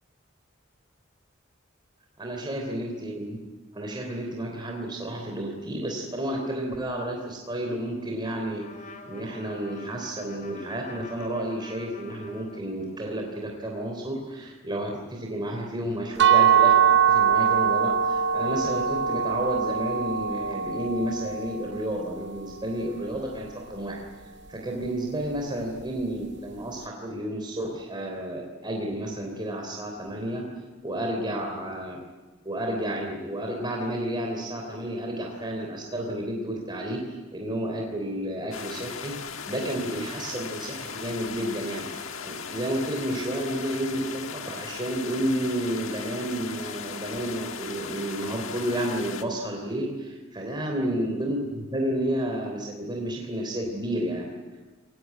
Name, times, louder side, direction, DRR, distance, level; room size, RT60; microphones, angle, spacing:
voice 1, 2.2-3.4 3.7-8.7 9.1-16.8 17.1-24.0 24.5-30.4 30.8-32.0 32.4-39.1 39.5-54.3, right 1 dB, 25° right, 1 dB, 3.4 m, -31 dB
Trumpet, 8.6-13.1, left 4 dB, 40° left, 3.1 m, -47 dB
sound 1, 16.2-22.0, right 8 dB, 60° right, 0.7 m, -22 dB
sound 2, 38.5-49.2, left 6 dB, 75° left, 1.6 m, -38 dB
23.5 x 19.5 x 9.5 m, 1.3 s
head